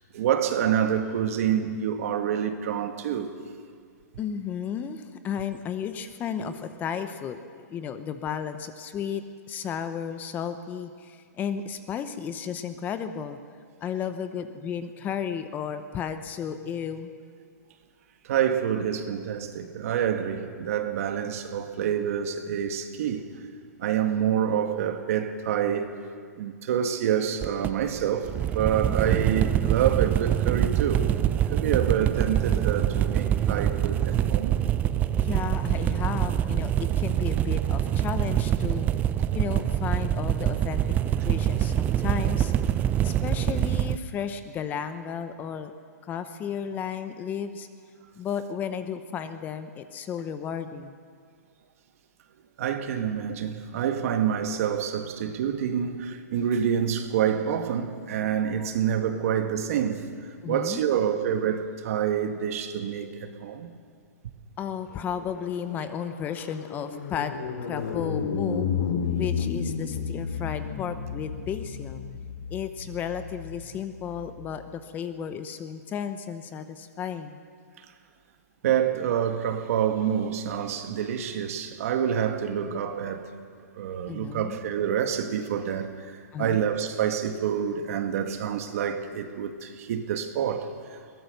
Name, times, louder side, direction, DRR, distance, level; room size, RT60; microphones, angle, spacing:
voice 1, 0.1-3.3 18.2-23.3 23.8-25.9 26.4-31.1 31.4-34.6 39.2-39.3 52.6-60.1 60.5-63.7 78.6-83.3 83.8-86.1 86.4-90.7, right 9 dB, 55° right, 1.9 m, -27 dB
voice 2, 4.2-13.4 13.8-17.1 28.6-29.0 35.2-38.9 39.3-42.5 43.0-45.7 46.0-47.7 48.2-51.0 60.4-60.8 64.6-68.7 69.1-72.0 72.5-77.4 84.1-84.6 86.3-86.6, left 7 dB, 20° left, 0.8 m, -33 dB
sound 1, 27.4-44.0, right 11 dB, 15° right, 0.5 m, -25 dB
sound 2, 65.0-74.5, left 6 dB, 70° left, 2.5 m, -32 dB
22.0 x 18.5 x 6.7 m
hypercardioid pair, 155°, 9 cm